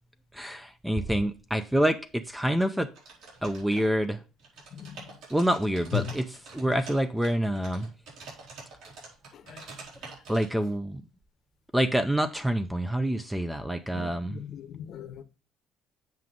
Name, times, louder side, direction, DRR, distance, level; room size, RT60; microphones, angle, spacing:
voice 1, 0.3-2.9 3.4-4.2 5.3-6.3 6.5-7.9 10.3-11.0 11.7-14.4, right 1 dB, 5° right, 0.5 m, -27 dB
sound 1, 2.9-4.1 4.4-10.5, right 4 dB, 75° right, 4.4 m, -46 dB
voice 2, 4.7-5.1 5.9-6.2 9.3-9.7 13.9-15.2, left 10 dB, 50° left, 0.9 m, -37 dB
7.7 x 6.1 x 3.7 m
cardioid pair, 150°, 0 cm